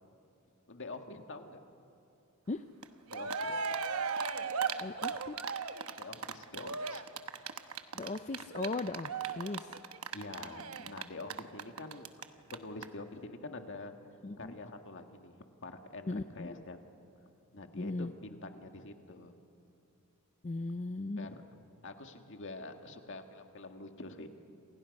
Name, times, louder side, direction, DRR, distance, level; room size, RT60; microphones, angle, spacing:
voice 1, 0.7-1.6 3.1-3.5 6.0-7.0 10.1-12.1 12.5-13.9 14.4-16.8 17.5-19.4 21.2-21.4 21.8-24.3, left 2 dB, 55° left, 5 dB, 1.8 m, -46 dB
Cheering, 2.8-2.9 3.1-12.2 12.5-12.6 12.8-12.9, right 5 dB, 70° right, 1.1 m, -36 dB
voice 2, 4.8-5.4 7.9-9.8 14.2-14.5 16.1-16.6 17.8-18.1 20.4-21.3, left 3 dB, 30° left, 9 dB, 0.5 m, -38 dB
28.5 x 28.0 x 5.4 m, 2.8 s
head